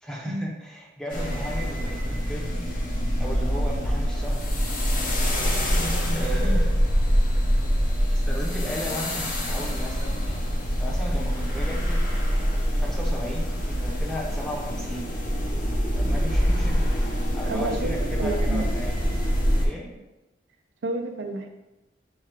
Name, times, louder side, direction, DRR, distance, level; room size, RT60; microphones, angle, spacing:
voice 1, 0.0-2.5 3.2-5.3 6.1-6.8 8.1-10.4 10.8-12.0 12.7-15.1 16.0-18.9 19.3-19.9, equal, 5° left, -3 dB, 0.7 m, -36 dB
sound 1, 1.1-19.7, equal, 45° left, 0.7 m, -25 dB
voice 2, 17.4-18.7 20.8-21.5, right 2 dB, 90° right, 5 dB, 0.5 m, -30 dB
4.6 x 2.3 x 4.6 m, 1.0 s
head